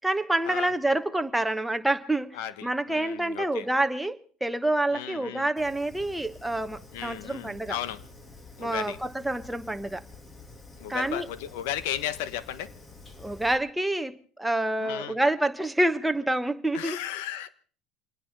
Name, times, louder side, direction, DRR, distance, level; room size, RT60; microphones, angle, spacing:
voice 1, 0.0-7.8 8.6-10.0 10.9-11.3 13.2-17.0, right 1 dB, 5° right, 1.2 m, -27 dB
voice 2, 2.3-3.7 4.9-5.5 6.9-8.0 8.6-9.0 10.8-12.7 14.8-15.2 16.7-17.5, left 11 dB, 80° left, 1.2 m, -35 dB
Fire, 5.6-13.6, left 3 dB, 25° left, 2.4 m, -49 dB
27.0 x 10.0 x 5.3 m
supercardioid pair, 105°, 0 cm